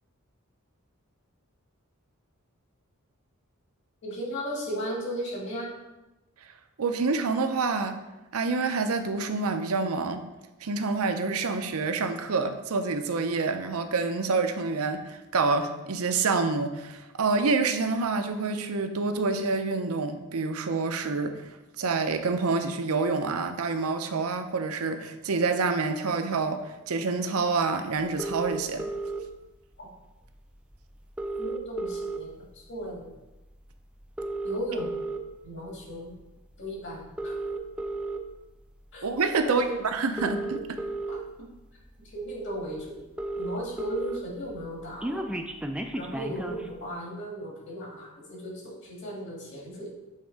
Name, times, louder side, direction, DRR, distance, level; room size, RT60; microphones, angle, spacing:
voice 1, 4.0-5.7 29.8-29.9 31.4-33.1 34.4-35.0 35.4-36.1 36.6-37.4 38.9-39.1 39.4-39.9 42.0-43.0 43.4-45.3 46.0-49.9, equal, 55° left, -4 dB, 2.2 m, -36 dB
voice 2, 6.8-8.0 8.3-10.2 10.6-21.4 21.8-28.8 39.0-40.8, right 4 dB, 75° right, 8 dB, 0.6 m, -27 dB
sound 1, 28.2-29.2 30.4-30.5 30.7-30.8 31.0-32.5 32.9-33.2 34.0-35.2 35.9-36.1 37.0-38.2 39.4-39.5 40.0-41.2 41.9-42.0 42.3-42.4 42.6-42.7 42.9-44.2 44.5-46.7, right 2 dB, 5° right, 0.3 m, -33 dB
7.5 x 3.6 x 4.6 m, 1.0 s
head